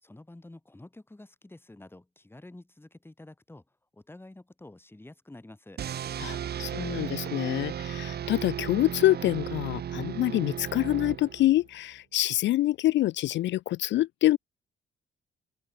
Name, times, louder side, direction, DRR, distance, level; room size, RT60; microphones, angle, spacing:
voice 1, 0.0-3.6 3.9-5.8, left 2 dB, 10° left, 3.2 m, -49 dB
sound 1, 5.8-11.6, right 9 dB, 55° right, 1.0 m, -35 dB
voice 2, 6.2-14.4, left 15 dB, 65° left, 0.4 m, -26 dB
cardioid pair, 90°, 20 cm